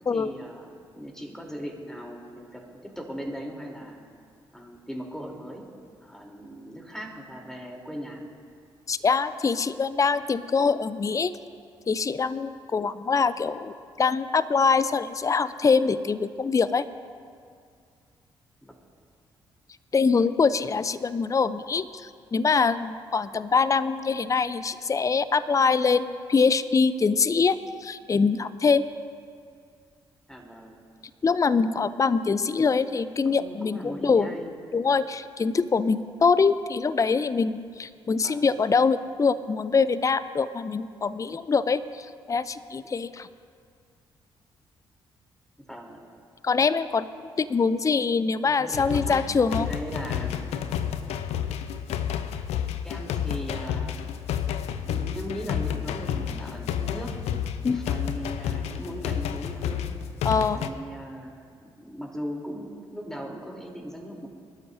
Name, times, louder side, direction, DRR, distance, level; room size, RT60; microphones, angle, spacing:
voice 1, 0.1-4.0 4.5-5.6 6.0-8.2 18.6-18.7 30.3-30.7 33.2-34.5 38.2-38.5 45.6-46.0 48.4-49.2 49.5-50.6 52.8-54.0 54.8-57.2 57.7-59.9 60.5-61.5 61.8-64.3, equal, 5° left, 0 dB, 3.3 m, -38 dB
voice 2, 8.9-11.3 11.9-16.9 19.9-28.9 31.2-34.3 34.7-43.3 46.4-47.1 47.4-49.7 57.6-57.8 60.2-60.6, left 5 dB, 30° left, 15 dB, 0.5 m, -24 dB
sound 1, 48.7-60.7, left 9 dB, 70° left, 0.6 m, -30 dB
23.0 x 12.5 x 2.7 m, 2.2 s
hypercardioid pair, 40°, 11 cm